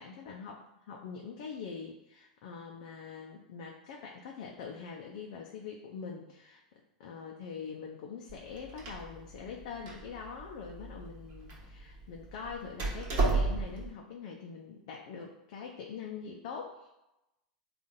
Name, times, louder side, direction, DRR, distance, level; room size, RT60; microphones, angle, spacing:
voice 1, 0.0-6.6 7.0-16.9, left 6 dB, 60° left, 0 dB, 0.5 m, -44 dB
Door, 8.3-13.9, right 3 dB, 45° right, 1.2 m, -34 dB
3.8 x 2.5 x 3.8 m, 0.93 s
hypercardioid pair, 95°, 4 cm